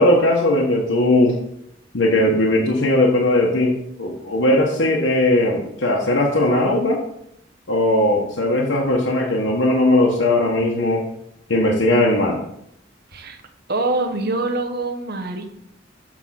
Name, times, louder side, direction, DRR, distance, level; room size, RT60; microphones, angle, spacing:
voice 1, 0.0-1.4 1.9-3.7 4.0-7.0 7.7-11.0 11.5-12.4, left 1 dB, 75° left, -2 dB, 1.2 m, -18 dB
voice 2, 13.7-15.5, right 2 dB, 55° right, 5 dB, 1.1 m, -24 dB
7.4 x 5.2 x 5.8 m, 0.75 s
head